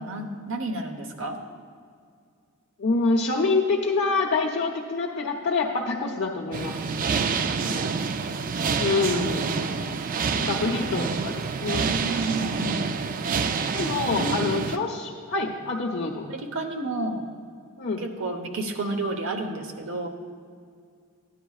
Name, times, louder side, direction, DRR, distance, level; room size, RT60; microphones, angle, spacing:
voice 1, 0.0-1.4 7.5-8.0 9.3-10.0 10.2-10.7 11.8-12.9 14.1-14.5 16.3-17.3 18.0-20.1, right 2 dB, 60° right, 4 dB, 0.9 m, -32 dB
voice 2, 2.8-6.8 8.8-9.4 10.3-11.9 13.7-16.3 17.8-18.0, left 3 dB, 55° left, -2 dB, 0.7 m, -26 dB
sound 1, 6.5-14.8, right 5 dB, 40° right, 0.3 m, -27 dB
13.5 x 10.0 x 2.4 m, 2.2 s
head